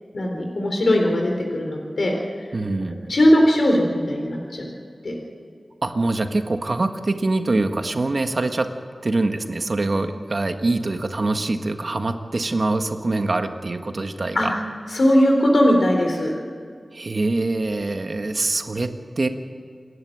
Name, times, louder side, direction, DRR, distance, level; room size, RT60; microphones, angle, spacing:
voice 1, 0.1-2.1 3.1-4.7 5.0-5.2 14.4-14.5 14.9-16.3, equal, 75° left, 1 dB, 3.9 m, -19 dB
voice 2, 2.5-3.2 5.8-8.7 9.0-14.5 16.9-19.3, right 2 dB, 55° right, 6 dB, 1.6 m, -24 dB
28.0 x 11.5 x 8.8 m, 2.2 s
wide cardioid pair, 75°, 0 cm